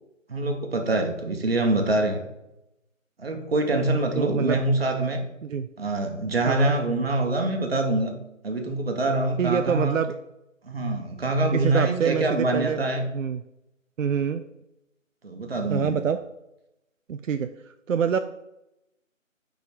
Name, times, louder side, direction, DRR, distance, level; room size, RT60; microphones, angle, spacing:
voice 1, 0.3-2.2 3.2-5.2 5.8-8.1 8.4-10.0 10.6-13.1 15.2-16.0, right 2 dB, 45° right, 4 dB, 1.1 m, -25 dB
voice 2, 4.1-4.6 5.4-5.7 6.5-6.7 9.4-10.1 11.5-12.8 13.1-13.4 14.0-14.4 15.7-16.2 17.1-17.5 17.9-18.2, right 7 dB, 70° right, 8 dB, 0.5 m, -25 dB
5.2 x 5.1 x 4.7 m, 0.89 s
figure-of-eight pair, 165°, 40 cm